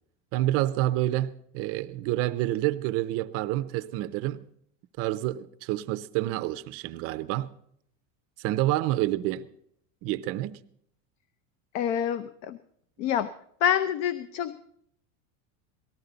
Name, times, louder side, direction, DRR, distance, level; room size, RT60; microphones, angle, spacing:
voice 1, 0.3-4.5 5.0-7.5 8.4-9.5 10.0-10.6, right 15 dB, 35° right, 0.5 m, -28 dB
voice 2, 11.7-12.6 13.0-13.3 13.6-14.6, left 9 dB, 65° left, 0.7 m, -27 dB
18.5 x 14.0 x 3.9 m
supercardioid pair, 155°, 40 cm